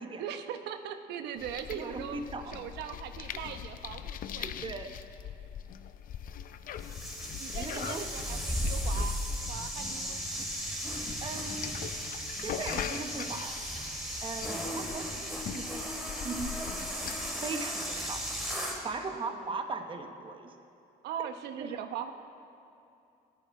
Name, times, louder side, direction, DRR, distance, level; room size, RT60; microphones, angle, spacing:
voice 1, 0.2-2.2 2.5-4.7 7.4-10.2 19.1-19.5 21.0-22.1, right 9 dB, 80° right, 8 dB, 0.9 m, -40 dB
sound 1, 1.4-17.3, left 9 dB, 55° left, 0.6 m, -42 dB
voice 2, 1.7-2.5 4.4-4.9 7.5-8.1 11.2-11.9 12.4-13.6 14.2-18.2 18.8-20.5 21.6-21.7, right 4 dB, 30° right, 6 dB, 1.0 m, -39 dB
sound 2, 6.8-18.8, equal, ahead, 2.6 m, -35 dB
19.0 x 10.5 x 4.8 m, 2.8 s
cardioid pair, 110°, 17 cm